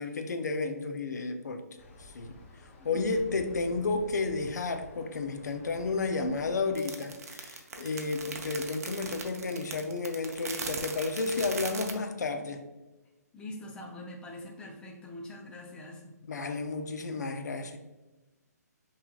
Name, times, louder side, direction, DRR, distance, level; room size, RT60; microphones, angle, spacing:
voice 1, 0.0-1.6 2.0-2.4 2.6-12.6 16.2-17.8, left 3 dB, 75° left, 7 dB, 0.6 m, -32 dB
sound 1, 1.8-6.8, left 1 dB, 45° left, 0.8 m, -51 dB
voice 2, 2.8-3.7 13.3-16.1, left 1 dB, 10° left, -1 dB, 0.6 m, -44 dB
sound 2, 6.7-11.9, right 5 dB, 60° right, 0.7 m, -39 dB
5.7 x 3.1 x 2.3 m, 1.1 s
hypercardioid pair, 145°, 9 cm